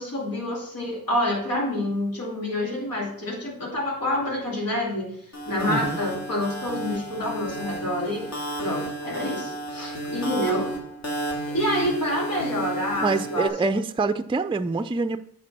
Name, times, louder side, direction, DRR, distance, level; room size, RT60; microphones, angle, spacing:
voice 1, 0.0-5.2 5.5-10.7 11.5-13.5, left 1 dB, 80° left, -4 dB, 2.6 m, -28 dB
sound 1, 5.3-13.5, right 1 dB, 50° left, 2.1 m, -32 dB
voice 2, 5.7-6.0 13.0-15.2, right 3 dB, 15° right, 11 dB, 0.4 m, -25 dB
8.7 x 4.2 x 6.1 m, 0.67 s
wide cardioid pair, 80°, 35 cm